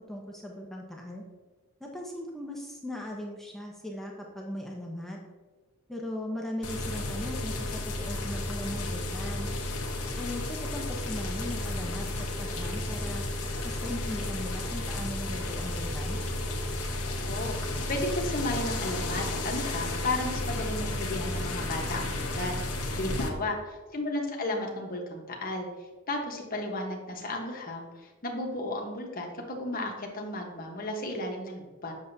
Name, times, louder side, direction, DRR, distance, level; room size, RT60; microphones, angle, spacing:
voice 1, 0.1-1.2 1.8-5.2 5.9-9.5 10.2-13.2 13.6-16.2 23.0-23.4, left 1 dB, ahead, -1 dB, 0.8 m, -38 dB
sound 1, 6.6-23.3, left 2 dB, 80° left, 1.0 m, -32 dB
voice 2, 17.9-22.6 22.9-23.6 23.9-25.7 26.1-31.9, left 1 dB, 40° left, 1 dB, 1.1 m, -33 dB
7.7 x 6.5 x 2.7 m, 1.3 s
head